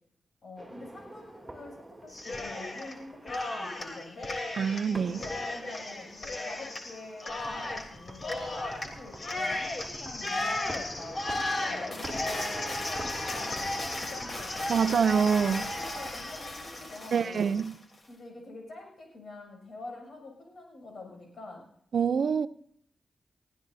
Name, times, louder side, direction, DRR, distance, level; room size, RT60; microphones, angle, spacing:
voice 1, 0.4-4.4 5.0-11.2 11.6-15.0 15.4-17.5 18.1-21.6, left 2 dB, 70° left, 7.2 m, -46 dB
sound 1, 0.6-15.9, right 1 dB, 20° right, 2.9 m, -47 dB
Cheering, 2.1-2.9 3.2-17.7, left 2 dB, 50° left, 3.3 m, -35 dB
voice 2, 4.6-5.2 14.7-15.6 17.1-17.7 21.9-22.5, right 6 dB, 75° right, 0.5 m, -25 dB
20.0 x 15.5 x 2.7 m
cardioid pair, 60°, 0 cm